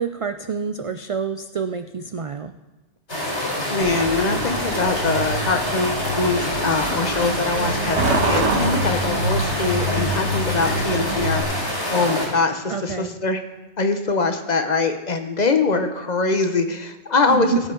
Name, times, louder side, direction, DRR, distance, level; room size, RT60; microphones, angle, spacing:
voice 1, 0.0-2.5 12.7-13.2 17.3-17.6, right 7 dB, 60° right, 8 dB, 0.3 m, -27 dB
Loud Stream, 3.1-12.3, left 1 dB, 85° left, 4.1 m, -26 dB
voice 2, 3.7-8.0 8.2-13.4 13.8-17.5, left 3 dB, 45° left, 7 dB, 0.9 m, -23 dB
Truck, 3.8-11.4, right 1 dB, 85° right, 1.6 m, -26 dB
18.0 x 8.0 x 3.8 m, 1.1 s
omnidirectional pair, 1.1 m